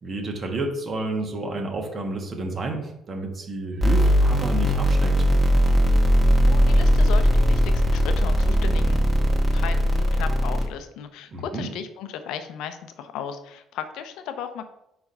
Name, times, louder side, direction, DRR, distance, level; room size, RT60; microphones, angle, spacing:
voice 1, 0.0-5.3 11.3-11.7, right 2 dB, 45° right, 2 dB, 1.4 m, -30 dB
sound 1, 3.8-10.7, equal, 25° right, 1.6 m, -19 dB
voice 2, 6.4-9.0 9.5-14.6, left 8 dB, 75° left, 9 dB, 0.6 m, -35 dB
4.8 x 4.4 x 5.5 m, 0.83 s
supercardioid pair, 65°, 0 cm